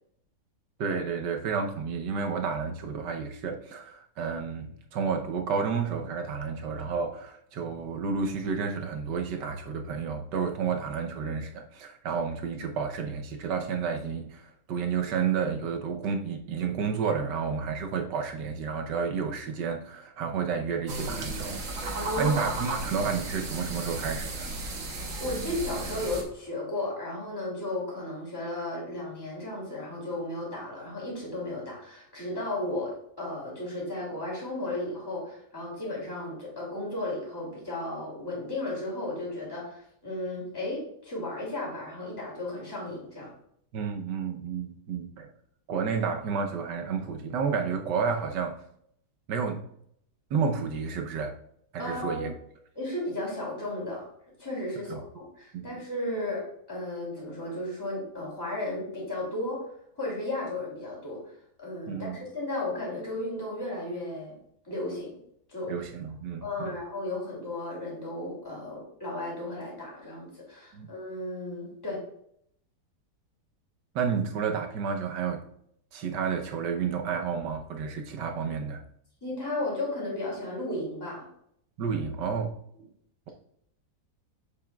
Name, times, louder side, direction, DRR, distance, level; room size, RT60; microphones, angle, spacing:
voice 1, 0.8-21.5 21.8-24.5 43.7-45.3 45.7-48.6 49.3-49.6 50.3-51.3 51.7-52.3 54.9-55.0 55.5-55.6 61.9-62.2 65.7-66.8 70.7-70.9 73.9-75.4 75.9-78.8 81.8-82.5, right 6 dB, 90° right, 4 dB, 1.5 m, -31 dB
sound 1, 20.9-26.2, right 2 dB, 55° right, 1.5 m, -34 dB
voice 2, 21.9-22.4 25.0-43.3 51.8-52.3 52.7-54.1 54.4-59.7 60.0-61.2 61.6-64.3 64.6-65.2 65.5-65.7 66.4-72.0 79.2-81.3, left 1 dB, 15° left, -4 dB, 2.8 m, -34 dB
7.3 x 7.2 x 2.4 m, 0.69 s
omnidirectional pair, 1.8 m